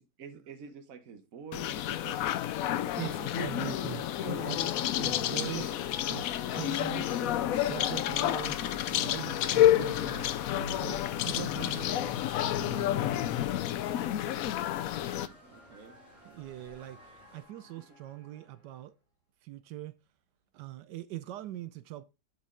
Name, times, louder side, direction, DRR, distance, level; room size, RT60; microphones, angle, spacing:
voice 1, 0.0-2.4 2.7-3.3 4.2-4.8 5.5-5.7 15.0-16.0 17.6-18.0, right 6 dB, 55° right, 1.4 m, -48 dB
sound 1, 1.5-15.3, left 12 dB, 70° left, 0.9 m, -30 dB
voice 2, 3.0-5.6 6.1-10.3 10.5-13.5 16.2-18.9 19.4-19.9 20.5-22.0, right 14 dB, 85° right, 1.2 m, -42 dB
sound 2, 3.9-18.8, left 1 dB, 40° right, 4.6 m, -53 dB
sound 3, 6.9-17.4, left 1 dB, 25° left, 3.1 m, -57 dB
7.9 x 5.4 x 3.7 m
omnidirectional pair, 1.8 m